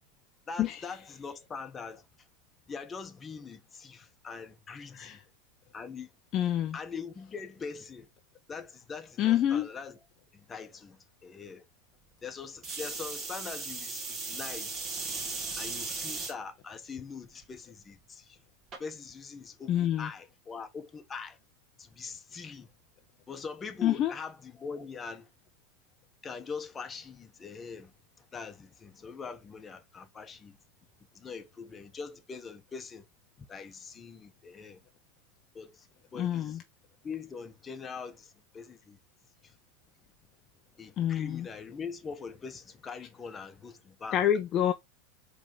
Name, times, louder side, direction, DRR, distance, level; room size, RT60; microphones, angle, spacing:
voice 1, 0.5-2.0 2.7-5.2 5.7-6.1 6.7-8.1 8.5-10.0 10.3-11.6 12.2-14.9 15.6-18.4 18.8-21.4 21.8-22.7 23.3-25.3 26.2-27.9 28.3-30.6 31.1-33.0 33.4-34.8 35.5-35.9 36.1-36.6 37.0-39.0 40.8-44.2, left 5 dB, 25° left, 1.1 m, -42 dB
voice 2, 6.3-6.8 9.2-9.7 19.7-20.1 23.8-24.1 36.1-36.6 41.0-41.5 44.1-44.7, left 11 dB, 40° left, 0.7 m, -27 dB
sound 1, 12.6-16.3 17.0-17.4 18.7-18.8, right 4 dB, 35° right, 2.5 m, -37 dB
4.9 x 3.6 x 5.4 m
hypercardioid pair, 110°, 0 cm